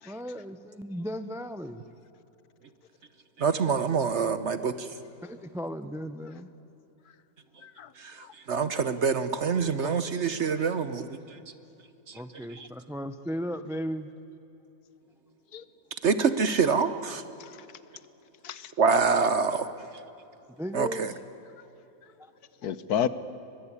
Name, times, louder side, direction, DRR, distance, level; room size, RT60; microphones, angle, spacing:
voice 1, 0.0-1.8 5.2-6.5 9.8-10.1 12.1-14.1 20.6-21.2 22.2-22.3, equal, 5° right, 11 dB, 0.4 m, -36 dB
voice 2, 3.4-4.9 8.0-8.2 8.5-11.1 16.0-17.2 18.8-19.7 20.7-21.1, right 5 dB, 50° right, 12 dB, 1.0 m, -25 dB
voice 3, 22.6-23.1, left 9 dB, 70° left, 15 dB, 1.4 m, -31 dB
23.5 x 21.0 x 9.8 m, 2.9 s
omnidirectional pair, 1.8 m